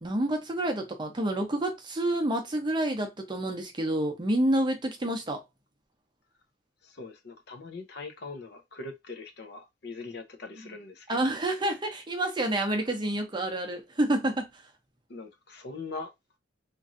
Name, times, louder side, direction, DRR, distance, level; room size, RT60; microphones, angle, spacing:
voice 1, 0.0-5.4 11.1-14.5, right 1 dB, 25° right, 0.6 m, -28 dB
voice 2, 6.8-11.1 15.1-16.1, left 3 dB, 55° left, 0.6 m, -41 dB
3.0 x 2.6 x 2.5 m
head